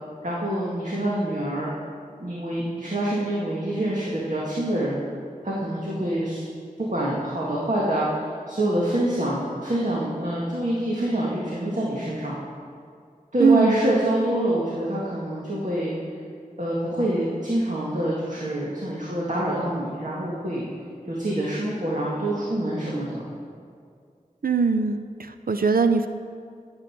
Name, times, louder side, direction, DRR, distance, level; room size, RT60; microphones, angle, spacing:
voice 1, 0.2-1.7 2.2-5.0 5.4-6.4 6.8-12.4 13.3-15.9 16.6-20.6 21.1-23.2, right 1 dB, 55° right, -6 dB, 1.8 m, -26 dB
voice 2, 13.4-13.8 24.4-26.1, right 5 dB, 75° right, 9 dB, 0.5 m, -21 dB
15.5 x 7.9 x 4.5 m, 2.2 s
wide cardioid pair, 45°, 15 cm